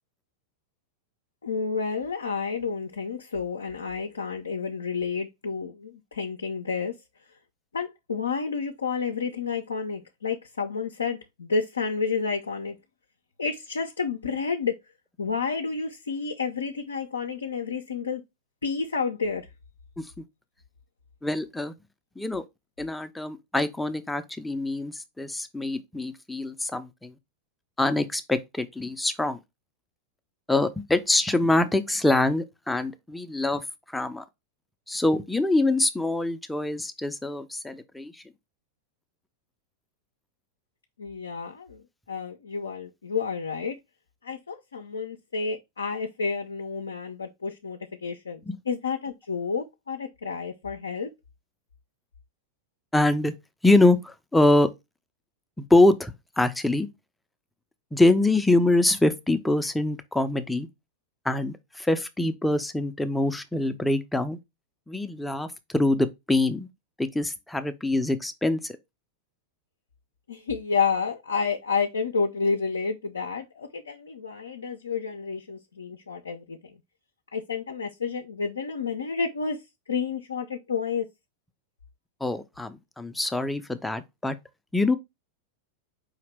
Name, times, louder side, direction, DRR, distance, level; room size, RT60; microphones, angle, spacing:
voice 1, 1.4-6.9 7.7-12.8 13.4-14.8 15.2-18.2 18.6-19.5 41.0-41.8 42.1-43.8 44.2-48.4 48.7-51.1 70.3-76.7 77.3-79.6 79.9-81.1, left 5 dB, 70° left, 0.5 m, -30 dB
voice 2, 21.2-21.7 22.2-22.4 22.8-27.1 27.8-29.4 30.5-34.2 34.9-38.2 48.5-48.6 52.9-53.3 53.6-54.7 55.6-56.9 57.9-60.7 61.2-64.4 64.9-66.7 67.0-68.8 82.2-84.4 84.7-85.0, left 2 dB, 5° left, 0.5 m, -24 dB
5.0 x 2.7 x 3.3 m
figure-of-eight pair, 90°, 0 cm